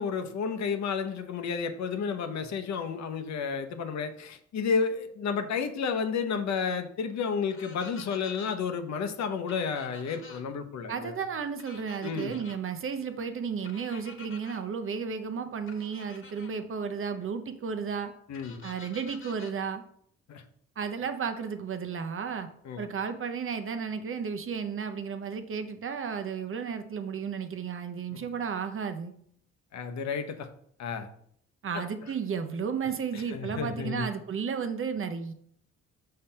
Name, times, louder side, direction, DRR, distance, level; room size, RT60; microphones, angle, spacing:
voice 1, 0.0-11.2 12.0-12.4 18.3-18.7 20.3-20.4 22.6-22.9 28.1-28.2 29.7-30.5 30.8-31.1 31.7-31.8 33.1-34.1, left 5 dB, 65° left, 8 dB, 0.9 m, -31 dB
sound 1, 7.5-8.5 9.5-10.4 11.6-12.6 13.6-14.6 15.7-16.5 18.3-19.5, left 4 dB, 40° left, 1.3 m, -49 dB
voice 2, 10.9-18.1 18.6-19.8 20.8-22.5 22.8-29.1 31.6-35.3, right 6 dB, 45° right, 8 dB, 0.8 m, -33 dB
5.7 x 3.4 x 5.5 m, 0.66 s
cardioid pair, 90°, 30 cm